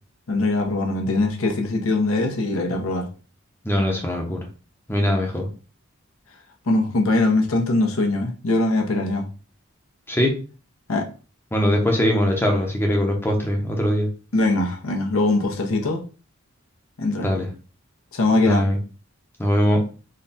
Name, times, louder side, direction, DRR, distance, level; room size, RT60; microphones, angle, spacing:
voice 1, 0.3-3.1 6.7-9.3 10.9-11.1 14.3-16.0 17.0-17.3 18.1-18.7, left 2 dB, 80° left, 0.8 m, -21 dB
voice 2, 3.6-4.4 4.9-5.5 10.1-10.3 11.5-14.1 17.2-17.5 18.4-18.8 19.4-19.8, equal, 10° left, 0.7 m, -21 dB
3.7 x 2.2 x 4.0 m
head